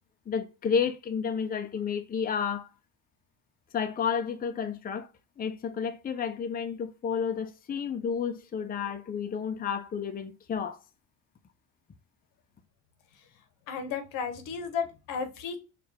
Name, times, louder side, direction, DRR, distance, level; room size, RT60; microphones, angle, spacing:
voice 1, 0.3-2.7 3.7-5.1 5.4-10.8, left 6 dB, 30° left, 0.6 m, -31 dB
voice 2, 13.7-15.6, left 6 dB, 80° left, 1.0 m, -33 dB
4.5 x 2.5 x 3.3 m
supercardioid pair, 90°, 32 cm